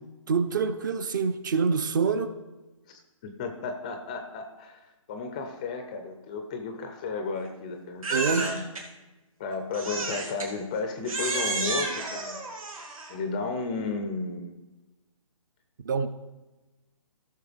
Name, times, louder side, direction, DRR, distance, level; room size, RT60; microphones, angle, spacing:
voice 1, 0.3-2.4 8.1-8.5 15.8-16.1, right 5 dB, 35° right, 11 dB, 0.6 m, -26 dB
voice 2, 2.9-8.6 9.4-12.4 12.8-14.6, left 4 dB, 15° left, 6 dB, 0.4 m, -33 dB
Crying sobbing, 8.0-8.8 9.7-10.5 11.1-13.2, right 3 dB, 80° right, 2.1 m, -31 dB
16.0 x 6.5 x 3.4 m, 1.1 s
hypercardioid pair, 160°, 17 cm